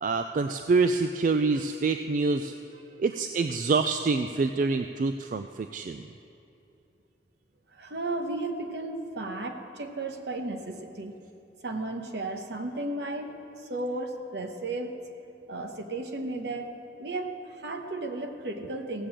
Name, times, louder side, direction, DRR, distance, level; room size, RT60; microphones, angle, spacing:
voice 1, 0.0-2.5 3.0-6.0, right 4 dB, 45° right, 8 dB, 0.3 m, -26 dB
voice 2, 7.7-11.2 11.6-15.0 15.5-16.7 17.0-19.1, right 2 dB, 65° right, 5 dB, 1.0 m, -34 dB
16.5 x 6.8 x 7.5 m, 2.8 s
head